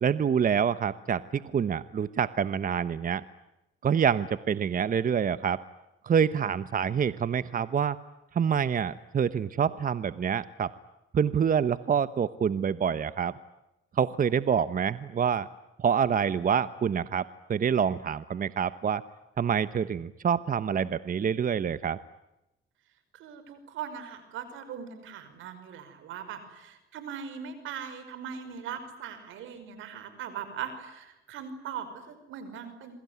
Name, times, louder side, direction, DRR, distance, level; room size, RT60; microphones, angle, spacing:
voice 1, 0.0-3.2 3.8-5.6 6.0-8.0 8.3-10.7 11.1-13.3 14.0-15.5 15.8-19.0 19.4-22.0, right 7 dB, 45° right, 14 dB, 1.0 m, -26 dB
voice 2, 23.1-32.9, right 8 dB, 90° right, 11 dB, 5.6 m, -40 dB
27.5 x 23.0 x 9.6 m, 0.92 s
cardioid pair, 90°, 20 cm